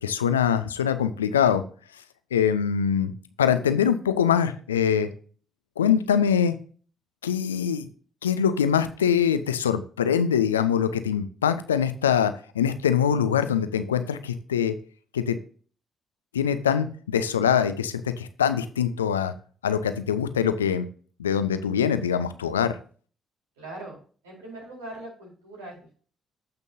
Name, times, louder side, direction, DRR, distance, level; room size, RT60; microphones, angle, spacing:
voice 1, 0.0-1.6 2.3-3.1 3.4-5.1 5.8-6.5 7.2-7.9 8.2-14.7 15.1-15.4 16.3-19.3 19.6-20.9 21.2-22.8, left 8 dB, 85° left, 11 dB, 0.5 m, -23 dB
voice 2, 23.6-26.0, right 1 dB, 80° right, -3 dB, 4.3 m, -41 dB
14.5 x 5.3 x 2.7 m, 0.41 s
figure-of-eight pair, 40°, 0 cm